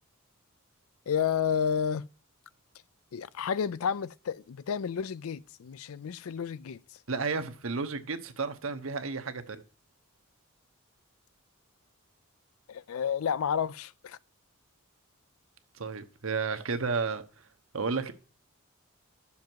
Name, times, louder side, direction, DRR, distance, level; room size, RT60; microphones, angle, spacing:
voice 1, 1.1-2.1 3.1-6.8 12.7-14.2, left 7 dB, 80° left, 0.4 m, -31 dB
voice 2, 7.1-9.6 15.8-17.4 17.7-18.1, right 4 dB, 70° right, 1.0 m, -32 dB
10.5 x 7.1 x 4.6 m
head